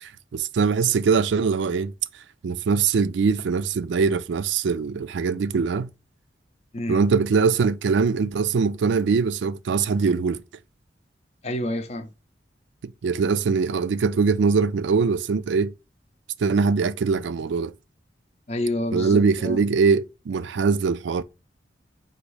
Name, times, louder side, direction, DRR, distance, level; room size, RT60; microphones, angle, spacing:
voice 1, 0.0-1.9 2.4-5.9 6.9-10.4 12.8-15.7 16.4-17.7 18.9-21.2, right 5 dB, 80° right, 0.4 m, -22 dB
voice 2, 11.4-12.1 18.5-19.6, left 1 dB, 35° left, 0.5 m, -28 dB
4.0 x 2.6 x 4.8 m
head